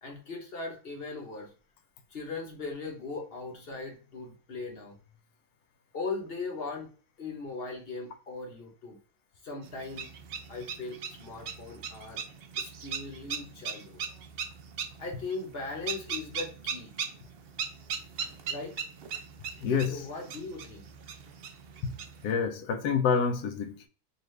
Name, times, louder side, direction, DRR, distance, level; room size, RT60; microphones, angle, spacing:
voice 1, 0.0-1.5 2.1-5.0 5.9-6.9 7.2-9.0 9.4-10.1 10.5-12.2 12.6-14.0 15.0-16.9 18.4-18.7 19.9-20.9, left 3 dB, 45° left, 1.0 m, -39 dB
sound 1, 9.6-22.3, right 6 dB, 85° right, 0.5 m, -39 dB
voice 2, 19.6-20.1 21.8-21.9 22.2-23.9, left 6 dB, 80° left, 1.2 m, -28 dB
3.9 x 2.5 x 3.1 m
omnidirectional pair, 1.6 m